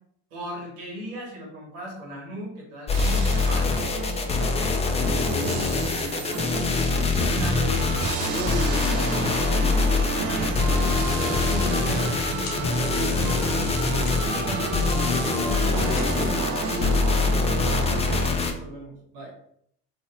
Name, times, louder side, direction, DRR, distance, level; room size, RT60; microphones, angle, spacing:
voice 1, 0.3-3.7 4.7-5.0 7.2-7.8 10.1-11.0 11.4-13.6 14.1-16.3 18.1-19.3, equal, 80° right, -2 dB, 1.2 m, -37 dB
sound 1, 2.9-18.5, left 3 dB, 15° left, 0.4 m, -24 dB
sound 2, 2.9-18.3, right 5 dB, 60° right, 0.6 m, -31 dB
voice 2, 5.0-6.7 8.3-9.4 15.7-17.7, equal, 15° right, -6 dB, 1.0 m, -36 dB
sound 3, 12.4-12.9 13.2-13.7 14.0-14.5 14.9-15.5 16.0-16.6, left 3 dB, 85° left, 0.9 m, -43 dB
2.6 x 2.5 x 2.8 m, 0.68 s
hypercardioid pair, 70°, 37 cm